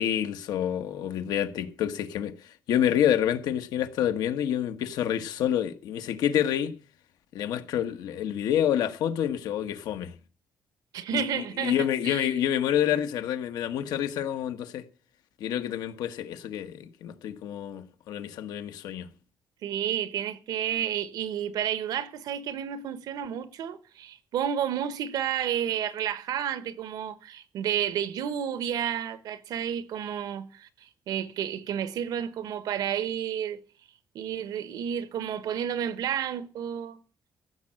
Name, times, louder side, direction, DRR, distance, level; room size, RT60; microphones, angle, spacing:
voice 1, 0.0-6.8 7.3-10.1 11.1-14.8 15.4-19.1, left 10 dB, 90° left, 1.3 m, -28 dB
voice 2, 10.9-12.3 19.6-33.6 34.1-37.0, right 9 dB, 75° right, 1.2 m, -31 dB
15.0 x 6.4 x 8.8 m
cardioid pair, 140°, 7 cm